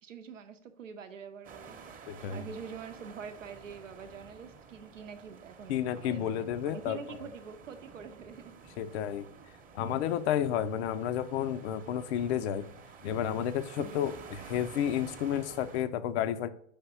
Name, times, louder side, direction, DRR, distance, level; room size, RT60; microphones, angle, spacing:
voice 1, 0.0-8.5 13.8-14.1, right 6 dB, 90° right, 8 dB, 0.7 m, -45 dB
sound 1, 1.4-15.8, right 5 dB, 20° right, 0.8 m, -51 dB
voice 2, 2.1-2.5 5.7-7.2 8.8-9.3 9.7-12.7 13.0-16.5, left 10 dB, 60° left, 13 dB, 0.5 m, -31 dB
5.5 x 3.5 x 5.4 m, 0.64 s
hypercardioid pair, 90°, 37 cm